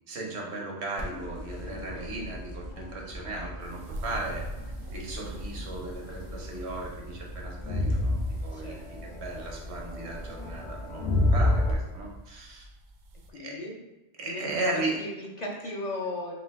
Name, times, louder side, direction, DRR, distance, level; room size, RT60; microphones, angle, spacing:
voice 1, 0.1-4.4 4.9-12.7 13.3-13.6 14.2-15.0, right 2 dB, 90° right, -1 dB, 1.1 m, -36 dB
Crowd, 1.0-11.7, left 1 dB, 80° left, 1.1 m, -32 dB
voice 2, 1.7-2.1 8.5-9.1 13.3-13.8 14.2-16.3, left 2 dB, 50° left, -1 dB, 0.6 m, -37 dB
sound 1, 3.6-13.3, right 1 dB, 60° right, 0.5 m, -45 dB
4.3 x 2.6 x 3.4 m, 1.1 s
omnidirectional pair, 1.1 m